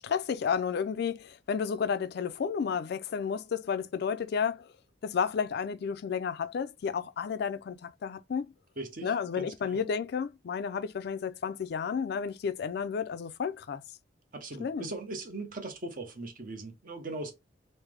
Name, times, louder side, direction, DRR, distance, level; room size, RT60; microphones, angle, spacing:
voice 1, 0.0-4.7 5.0-8.5 9.0-13.8 14.6-14.9, left 6 dB, 60° left, 0.3 m, -32 dB
voice 2, 8.8-9.9 14.3-17.3, right 2 dB, 50° right, 0.9 m, -40 dB
3.3 x 2.0 x 3.4 m
head